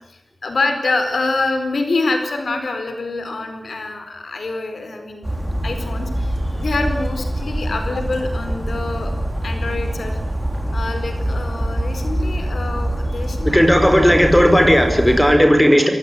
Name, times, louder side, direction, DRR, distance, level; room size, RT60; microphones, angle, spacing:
voice 1, 0.1-9.1 9.4-10.2 10.7-13.6, left 3 dB, 85° left, 6 dB, 4.5 m, -25 dB
Bird vocalization bird call bird song, 5.2-15.3, right 1 dB, 15° right, 4.6 m, -24 dB
voice 2, 13.4-15.9, equal, 5° left, 6 dB, 4.8 m, -14 dB
24.0 x 18.5 x 9.8 m, 0.85 s
wide cardioid pair, 80°, 0 cm